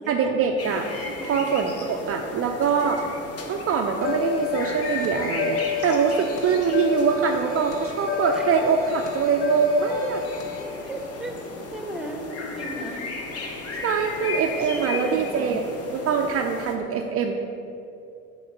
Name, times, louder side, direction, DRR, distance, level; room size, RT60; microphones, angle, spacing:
voice 1, 0.1-0.9 1.3-3.0 3.5-10.2 12.9-13.0 13.8-17.3, right 6 dB, 40° right, 3 dB, 0.6 m, -24 dB
sound 1, 0.6-16.7, left 3 dB, 40° left, 1.2 m, -35 dB
voice 2, 1.0-1.5 8.3-8.5 10.8-11.4 11.7-13.1 14.7-15.6, right 1 dB, ahead, 3 dB, 1.0 m, -36 dB
sound 2, 4.0-10.6, left 7 dB, 65° left, 1.0 m, -30 dB
6.9 x 4.2 x 6.7 m, 2.6 s
hypercardioid pair, 65°, 37 cm